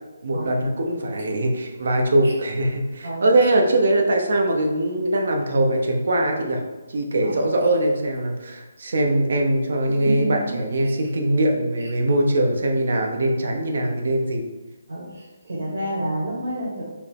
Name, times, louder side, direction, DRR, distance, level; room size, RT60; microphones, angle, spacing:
voice 1, 0.2-6.6 6.9-14.5, right 1 dB, 60° right, 2 dB, 0.8 m, -21 dB
voice 2, 3.0-3.5 7.2-7.6 9.8-10.6 14.9-16.8, right 1 dB, 90° right, -5 dB, 1.5 m, -30 dB
5.1 x 2.1 x 4.6 m, 1.2 s
hypercardioid pair, 170°, 0 cm